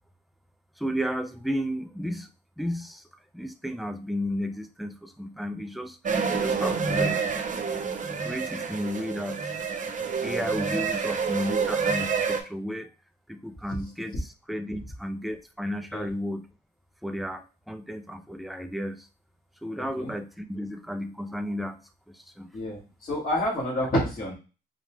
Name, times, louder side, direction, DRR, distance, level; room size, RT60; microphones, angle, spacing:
voice 1, 0.8-2.3 2.6-3.0 3.3-7.3 8.2-9.5 10.2-12.9 13.3-16.5 17.0-19.1 19.6-21.8 22.1-22.5, equal, ahead, 8 dB, 0.5 m, -33 dB
sound 1, 6.1-12.4, right 5 dB, 40° right, 0.8 m, -28 dB
voice 2, 19.8-20.1 22.5-24.3, left 1 dB, 45° left, -8 dB, 2.2 m, -28 dB
4.9 x 2.3 x 3.2 m, 0.32 s
cardioid pair, 90°, 20 cm